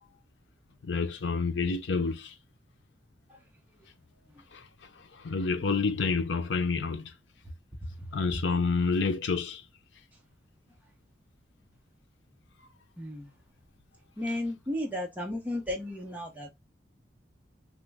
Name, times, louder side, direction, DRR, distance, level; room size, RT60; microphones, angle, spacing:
voice 1, 0.8-2.3 4.5-4.6 5.2-7.1 8.1-9.6, left 4 dB, 85° left, 0.6 m, -28 dB
voice 2, 13.0-13.3 14.2-16.5, left 1 dB, 10° right, 0.8 m, -34 dB
3.1 x 2.1 x 3.4 m
head